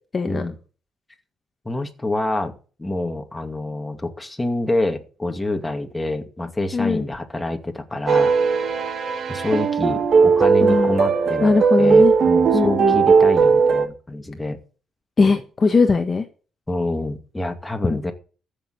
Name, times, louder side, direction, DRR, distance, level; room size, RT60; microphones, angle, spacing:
voice 1, 0.1-0.5 6.7-7.1 10.6-11.0 11.4-12.1 12.5-13.0 15.2-16.2, left 4 dB, 35° left, 5 dB, 1.6 m, -19 dB
voice 2, 1.6-8.3 9.3-11.5 11.8-14.6 16.7-18.1, left 2 dB, 15° left, 5 dB, 2.4 m, -27 dB
sound 1, 8.1-13.9, right 5 dB, 60° right, 1.7 m, -17 dB
14.5 x 6.8 x 8.2 m, 0.39 s
cardioid pair, 90°, 0 cm